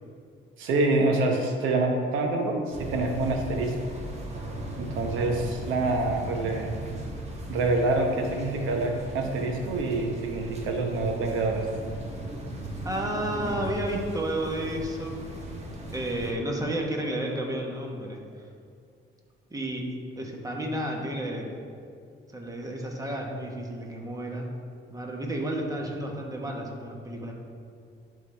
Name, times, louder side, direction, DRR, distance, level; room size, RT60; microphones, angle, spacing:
voice 1, 0.6-4.0 4.8-6.9 7.5-11.7, right 2 dB, 90° right, 2 dB, 0.9 m, -26 dB
sound 1, 2.7-16.3, right 1 dB, 35° right, 1.3 m, -37 dB
voice 2, 12.8-15.2 15.9-18.4 19.5-19.9 20.2-21.5 22.3-24.5 24.9-27.3, right 1 dB, 15° right, 0 dB, 1.2 m, -31 dB
11.5 x 3.8 x 3.3 m, 2.3 s
cardioid pair, 90°, 20 cm